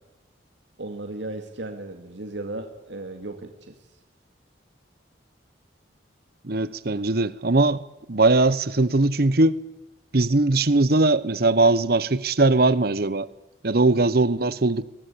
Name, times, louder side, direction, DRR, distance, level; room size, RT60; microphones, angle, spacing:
voice 1, 0.8-3.9, right 2 dB, 75° right, 2.3 m, -35 dB
voice 2, 6.4-7.8 8.1-9.6 10.1-13.3 13.6-14.8, right 2 dB, 55° right, 1.0 m, -20 dB
26.5 x 22.5 x 8.6 m
head